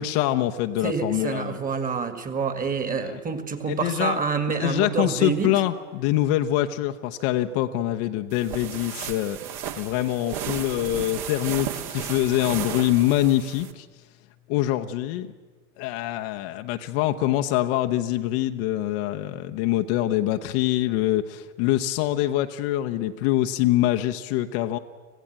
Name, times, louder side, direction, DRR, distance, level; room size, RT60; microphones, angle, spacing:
voice 1, 0.0-1.6 2.9-3.2 3.7-4.2 4.6-13.9 14.5-15.3 15.8-24.8, left 14 dB, 40° left, 6 dB, 1.0 m, -25 dB
voice 2, 0.8-5.5, right 5 dB, 20° right, 10 dB, 2.0 m, -27 dB
sound 1, 8.3-13.7, right 9 dB, 40° right, 1.8 m, -34 dB
26.0 x 16.0 x 7.6 m, 1.4 s
figure-of-eight pair, 90°, 45 cm